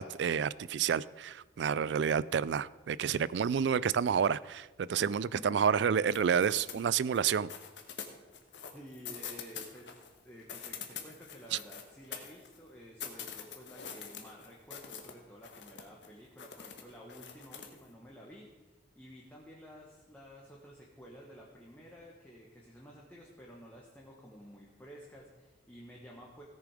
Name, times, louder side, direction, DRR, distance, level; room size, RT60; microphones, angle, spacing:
voice 1, 0.0-7.5 11.5-11.6, right 7 dB, 75° right, 20 dB, 0.3 m, -29 dB
voice 2, 5.0-5.4 6.5-6.7 8.7-26.4, equal, 10° left, -3 dB, 1.5 m, -52 dB
sound 1, 6.1-7.2 7.5-10.1 10.4-12.6 13.0-15.1 15.4-16.1 16.4-17.8, left 8 dB, 80° left, 1.4 m, -44 dB
16.5 x 7.0 x 4.9 m, 1.2 s
head